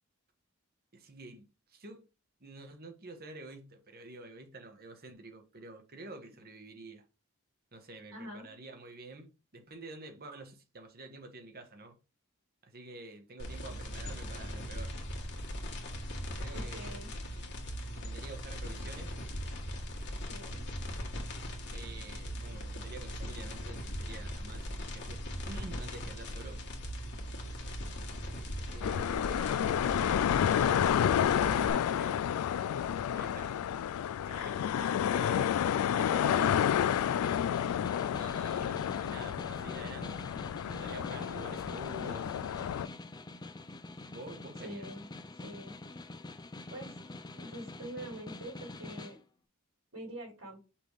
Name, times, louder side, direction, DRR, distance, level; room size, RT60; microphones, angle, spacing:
voice 1, 0.9-2.0 2.4-7.0 7.7-12.0 12.6-14.9 16.4-17.0 17.3-17.5 17.9-19.2 21.7-26.6 28.7-29.7 30.3-32.2 32.6-33.7 34.2-36.8 38.1-40.2 40.6-42.4 44.1-44.8, right 2 dB, 45° right, 1.4 m, -49 dB
voice 2, 8.1-8.5 16.5-17.1 20.3-20.7 44.6-45.1 45.3-45.8 46.7-47.0 47.4-49.2 49.9-50.6, right 1 dB, 90° right, 3.7 m, -45 dB
sound 1, 13.4-31.7, equal, 55° left, 1.8 m, -39 dB
sound 2, 28.8-42.9, left 9 dB, 90° left, 0.3 m, -30 dB
Snare drum, 36.5-49.2, left 2 dB, 20° left, 0.5 m, -46 dB
5.9 x 3.5 x 4.8 m
head